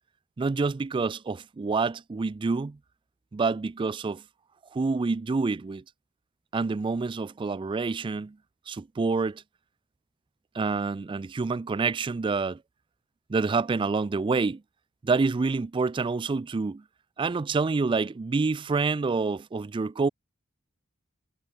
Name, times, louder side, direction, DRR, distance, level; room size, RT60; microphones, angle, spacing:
voice 1, 0.4-2.8 3.3-4.2 4.7-5.8 6.5-8.4 8.7-9.4 10.5-12.6 13.3-14.6 15.0-16.8 17.2-20.1, right 4 dB, 25° right, 0.3 m, -27 dB
head